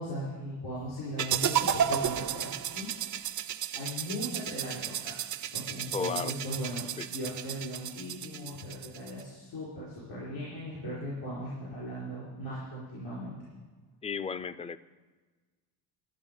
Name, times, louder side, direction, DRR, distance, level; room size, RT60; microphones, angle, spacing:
voice 1, 0.0-2.9 3.8-5.2 5.5-13.3, equal, 85° left, -8 dB, 4.7 m, -38 dB
sound 1, 1.2-9.2, right 9 dB, 45° right, 0.5 m, -33 dB
voice 2, 5.9-6.4 7.0-7.1 14.0-14.8, left 6 dB, 15° left, 15 dB, 0.3 m, -34 dB
12.0 x 9.9 x 5.4 m, 1.3 s
cardioid pair, 100°, 42 cm